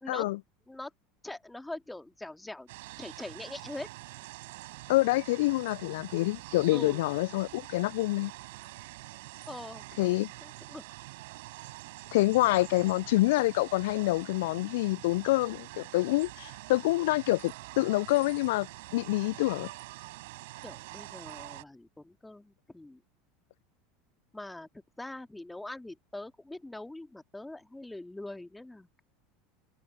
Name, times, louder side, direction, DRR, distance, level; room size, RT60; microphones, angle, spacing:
voice 1, 0.1-0.4 4.9-8.3 10.0-10.3 12.1-18.7 18.9-19.7, left 19 dB, 65° left, 0.3 m, -27 dB
voice 2, 1.2-2.7 3.0-3.9 6.7-7.0 9.4-9.8 10.4-10.9 20.6-23.0 24.3-24.7 25.0-29.0, left 2 dB, 10° left, 2.1 m, -43 dB
sound 1, 2.7-21.6, right 21 dB, 65° right, 6.4 m, -46 dB
figure-of-eight pair, 75°, 0 cm